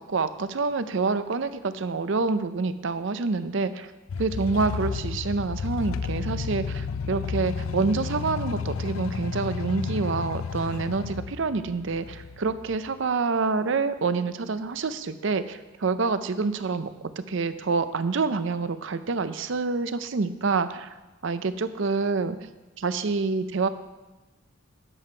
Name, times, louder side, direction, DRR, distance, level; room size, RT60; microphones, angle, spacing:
voice 1, 0.0-3.9 4.2-16.9 17.3-20.9 21.2-22.5 22.8-23.7, right 4 dB, 60° right, 12 dB, 0.5 m, -27 dB
sound 1, 4.1-13.0, left 5 dB, 80° left, 0.4 m, -32 dB
11.0 x 7.7 x 4.4 m, 1.1 s
head